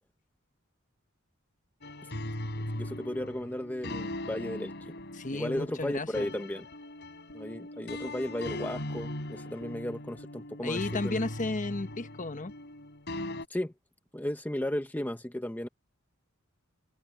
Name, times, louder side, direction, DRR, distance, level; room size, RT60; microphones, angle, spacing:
sound 1, 1.8-13.5, left 1 dB, 55° left, 4.0 m, -39 dB
voice 1, 2.7-4.9 5.3-6.7 7.3-11.2 13.5-13.7 14.1-15.7, left 1 dB, 10° left, 0.8 m, -35 dB
voice 2, 5.1-6.3 10.6-12.5, left 2 dB, 40° left, 1.1 m, -33 dB
head